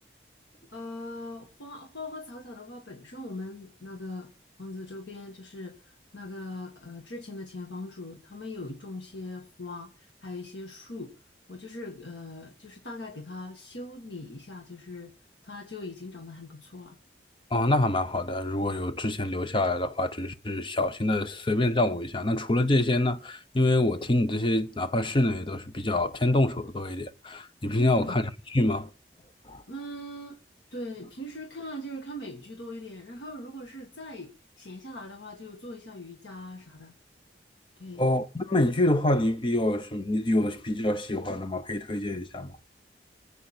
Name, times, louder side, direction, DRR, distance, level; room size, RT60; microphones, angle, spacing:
voice 1, 0.7-4.3 4.6-11.1 11.5-15.1 15.4-17.0 27.7-28.2 29.7-30.4 30.7-34.3 34.6-36.9 37.8-38.1, left 1 dB, 85° left, 1.8 m, -40 dB
voice 2, 17.5-28.2 28.5-28.9 29.5-29.6 38.0-42.5, left 1 dB, 25° left, 0.8 m, -26 dB
23.5 x 8.3 x 4.4 m
head